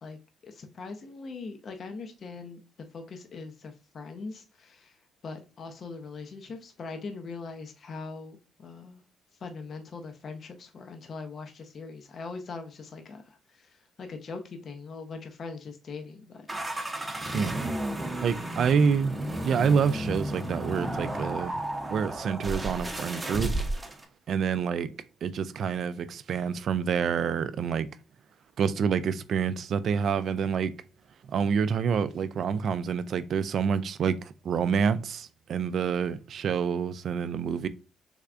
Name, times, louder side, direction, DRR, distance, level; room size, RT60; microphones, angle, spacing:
voice 1, 0.4-2.6 2.9-4.9 5.2-9.0 9.4-13.7 14.0-16.4, left 4 dB, 50° left, 0.5 m, -41 dB
sound 1, 16.5-24.0, right 1 dB, 15° right, 0.7 m, -33 dB
voice 2, 17.3-17.7 18.2-21.5 21.9-23.5 24.3-24.9 25.2-27.9 28.6-30.7 31.3-37.7, right 6 dB, 65° right, 0.3 m, -27 dB
3.5 x 3.3 x 2.4 m
cardioid pair, 90°, 0 cm